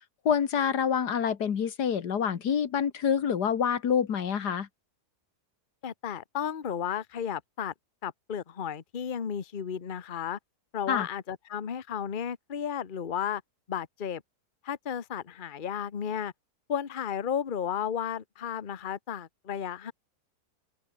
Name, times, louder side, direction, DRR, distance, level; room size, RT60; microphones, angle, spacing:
voice 1, 0.3-4.7 10.9-11.1, left 7 dB, 80° left, 2.0 m, -27 dB
voice 2, 5.8-7.7 8.0-10.4 10.7-13.4 13.7-14.2 14.6-16.3 16.7-19.9, left 8 dB, 35° left, 1.1 m, -33 dB
open air
omnidirectional pair, 1.7 m